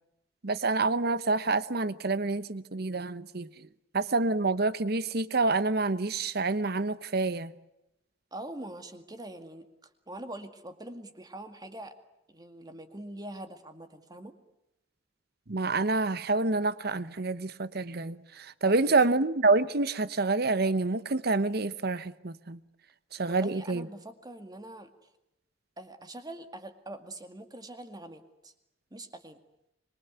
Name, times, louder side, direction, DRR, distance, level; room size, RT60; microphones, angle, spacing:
voice 1, 0.4-3.7 3.9-7.5 15.5-22.6 23.1-23.9, right 3 dB, 55° right, 1.0 m, -27 dB
voice 2, 8.3-12.0 12.3-14.3 18.6-19.0 23.3-24.9 25.8-28.5 28.9-29.4, right 1 dB, 20° right, 2.1 m, -44 dB
25.5 x 23.0 x 8.2 m
head